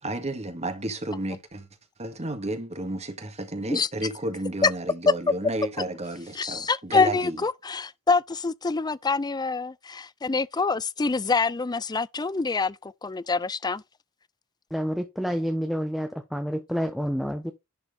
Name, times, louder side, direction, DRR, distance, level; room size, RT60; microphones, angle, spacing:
voice 1, 0.0-1.7 2.0-7.4, right 1 dB, 30° right, 1.8 m, -32 dB
voice 2, 6.4-13.8, left 4 dB, 20° left, 0.4 m, -26 dB
voice 3, 14.7-17.5, equal, ahead, 0.9 m, -28 dB
11.0 x 4.6 x 3.8 m
head